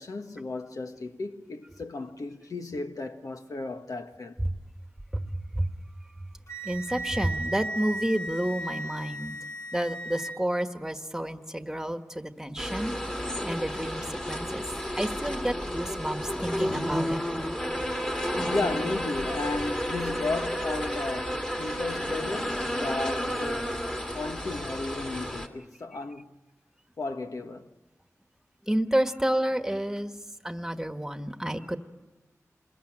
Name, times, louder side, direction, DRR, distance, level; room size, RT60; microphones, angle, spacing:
voice 1, 0.0-4.4 18.5-23.8 24.1-26.3 27.0-27.7, left 3 dB, 85° left, 1.4 m, -34 dB
voice 2, 5.1-5.7 6.2-6.3 6.6-9.4 9.7-14.6 15.0-17.2 28.7-30.1 30.4-31.8, right 1 dB, 10° right, 1.5 m, -30 dB
Wind instrument woodwind instrument, 6.5-10.3, right 1 dB, 65° left, 2.7 m, -36 dB
sound 1, 12.6-25.5, equal, 15° left, 2.3 m, -31 dB
27.5 x 21.5 x 8.9 m
wide cardioid pair, 85°, 6 cm